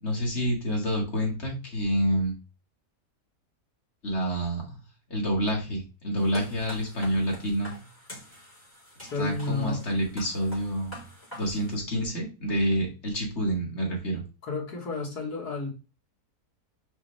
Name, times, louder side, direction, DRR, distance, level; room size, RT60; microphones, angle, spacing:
voice 1, 0.0-2.4 4.0-4.6 5.1-7.7 9.2-11.0 11.3-14.2, equal, 45° left, -1 dB, 2.4 m, -28 dB
sound 1, 6.2-11.8, equal, 10° left, 4.2 m, -45 dB
voice 2, 9.1-9.8 14.4-15.7, left 3 dB, 75° left, -1 dB, 2.2 m, -32 dB
5.9 x 5.2 x 3.4 m, 0.31 s
omnidirectional pair, 1.7 m